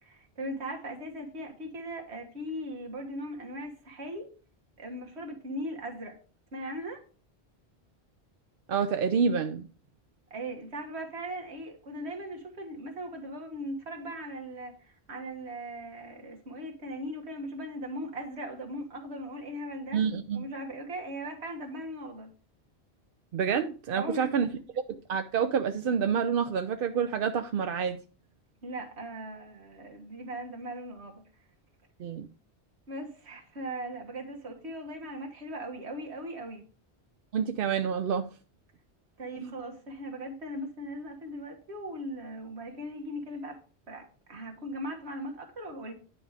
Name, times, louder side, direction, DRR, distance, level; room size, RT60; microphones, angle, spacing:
voice 1, 0.0-4.3 4.8-6.2 6.5-7.0 10.3-20.0 20.3-22.3 23.9-24.6 28.6-31.2 32.9-36.6 39.2-43.6 43.9-45.9, equal, 85° right, 2.0 m, -39 dB
voice 2, 8.7-9.7 19.9-20.4 23.3-24.5 24.9-28.0 32.0-32.3 37.3-38.3 39.4-39.5, right 7 dB, 60° right, 0.7 m, -28 dB
10.0 x 5.0 x 4.8 m
omnidirectional pair, 1.1 m